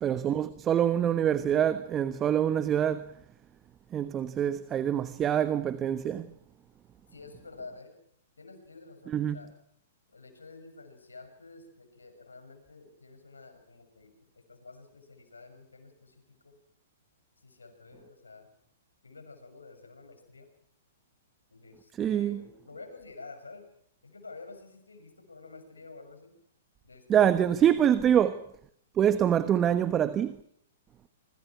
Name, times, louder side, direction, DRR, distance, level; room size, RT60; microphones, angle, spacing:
voice 1, 0.0-3.1 3.9-6.3 9.1-9.4 22.0-22.4 27.1-28.4 28.9-30.4, right 9 dB, 25° right, 1.2 m, -25 dB
voice 2, 7.1-7.9 8.4-9.5 10.1-16.6 17.4-18.5 19.0-20.5 21.5-23.7 24.0-26.4 26.8-27.9, left 3 dB, 90° left, 6.7 m, -50 dB
26.5 x 24.5 x 6.0 m
hypercardioid pair, 115°, 0 cm